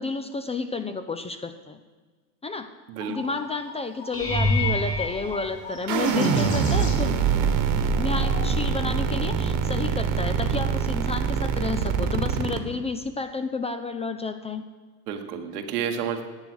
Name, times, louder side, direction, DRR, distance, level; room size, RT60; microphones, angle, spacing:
voice 1, 0.0-1.8 2.4-2.7 3.1-7.4 7.9-14.6, left 4 dB, 15° left, 9 dB, 0.4 m, -31 dB
sound 1, 3.0-9.4, left 2 dB, 60° left, 3.1 m, -41 dB
sound 2, 4.1-6.4 7.1-7.5 7.9-8.1 12.4-12.5, left 1 dB, 30° left, 1.8 m, -28 dB
sound 3, 5.9-12.6, right 6 dB, 45° right, 1.3 m, -24 dB
voice 2, 15.1-16.2, right 8 dB, 80° right, 5 dB, 1.5 m, -30 dB
10.5 x 8.2 x 6.1 m, 1.4 s
supercardioid pair, 110°, 45 cm